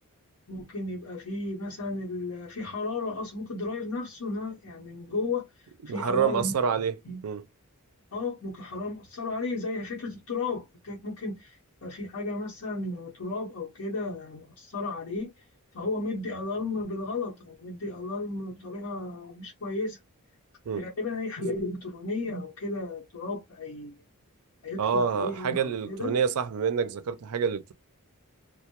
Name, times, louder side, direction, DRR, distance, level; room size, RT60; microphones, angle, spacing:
voice 1, 0.5-5.5 5.9-6.5 7.0-7.2 8.1-11.5 11.8-15.3 15.7-20.0 20.8-23.9 24.6-26.2, left 3 dB, 70° left, 0.8 m, -34 dB
voice 2, 5.8-6.9 7.2-7.4 20.7-20.9 24.8-27.7, right 6 dB, 80° right, 0.4 m, -27 dB
2.2 x 2.0 x 2.8 m
head